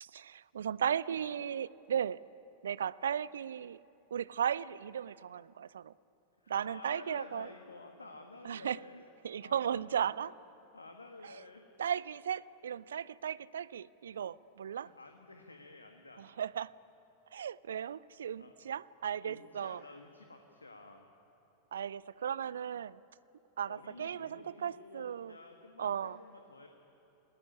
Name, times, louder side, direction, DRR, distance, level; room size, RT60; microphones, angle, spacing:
voice 1, 0.0-2.2 2.6-3.8 4.1-5.9 6.5-7.5 8.4-8.8 9.2-10.3 11.2-11.4 11.8-14.9 16.2-16.7 17.3-19.8 21.7-23.0 23.6-25.4 25.8-26.2, right 8 dB, 65° right, 20 dB, 0.5 m, -36 dB
voice 2, 6.4-9.0 9.3-10.1 10.7-11.7 14.1-14.2 14.7-16.3 18.4-18.5 19.2-21.1 23.7-26.7, left 2 dB, 80° left, 4 dB, 1.7 m, -52 dB
29.0 x 19.5 x 9.9 m, 3.0 s
figure-of-eight pair, 90°, 0 cm